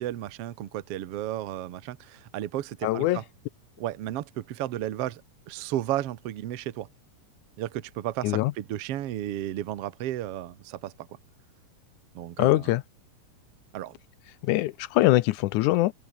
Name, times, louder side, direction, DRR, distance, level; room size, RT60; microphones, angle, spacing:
voice 1, 0.0-3.2 3.8-5.2 5.5-6.9 7.6-11.1 12.2-12.7 13.7-14.0, right 13 dB, 60° right, 1.8 m, -33 dB
voice 2, 2.8-3.2 8.2-8.5 12.4-12.8 14.4-15.9, left 17 dB, 80° left, 1.9 m, -23 dB
open air
omnidirectional pair, 3.8 m